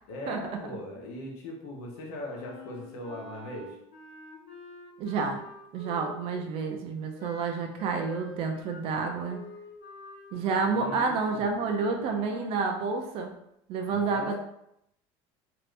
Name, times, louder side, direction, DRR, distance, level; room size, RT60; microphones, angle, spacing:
voice 1, 0.1-3.8 10.7-11.5 13.9-14.4, left 1 dB, 80° left, -1 dB, 1.0 m, -40 dB
Wind instrument woodwind instrument, 2.3-6.4 7.2-12.6, left 2 dB, 50° left, 1.2 m, -47 dB
voice 2, 5.0-5.4 5.7-9.4 10.3-13.3 13.7-14.4, right 4 dB, 50° right, 3 dB, 0.5 m, -29 dB
2.8 x 2.5 x 3.2 m, 0.79 s
cardioid pair, 150°, 12 cm